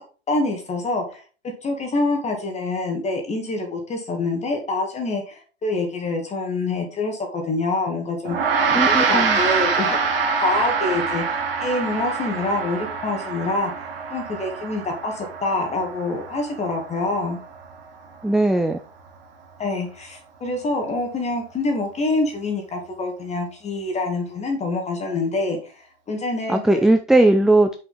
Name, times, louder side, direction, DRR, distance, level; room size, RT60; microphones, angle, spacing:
voice 1, 0.3-1.2 1.6-8.4 8.7-10.0 10.4-13.7 14.1-17.4 19.6-26.8, left 2 dB, 20° left, 3 dB, 2.1 m, -26 dB
Gong, 8.2-17.9, right 5 dB, 65° right, 2.5 m, -25 dB
voice 2, 8.7-9.4 18.2-18.8 26.5-27.7, right 2 dB, ahead, 7 dB, 0.4 m, -18 dB
8.3 x 6.3 x 3.9 m, 0.36 s
figure-of-eight pair, 95°, 32 cm